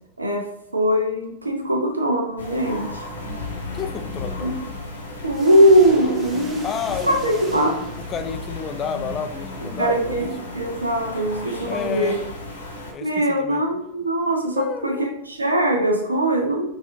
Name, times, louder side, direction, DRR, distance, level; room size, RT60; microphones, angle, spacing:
voice 1, 0.2-3.0 4.4-4.6 5.2-6.7 7.1-7.8 9.8-12.2 13.0-16.8, right 1 dB, 80° right, 2 dB, 0.6 m, -21 dB
sound 1, 2.4-12.9, left 2 dB, 75° left, 0.9 m, -34 dB
voice 2, 3.7-4.6 6.6-7.3 7.6-10.3 11.7-12.2 12.9-13.1 13.4-13.6 14.6-15.1, left 7 dB, 25° left, 8 dB, 0.3 m, -30 dB
sound 2, 5.3-8.7, right 1 dB, 15° right, 0.7 m, -41 dB
4.1 x 2.7 x 2.5 m, 0.82 s
figure-of-eight pair, 90°, 0 cm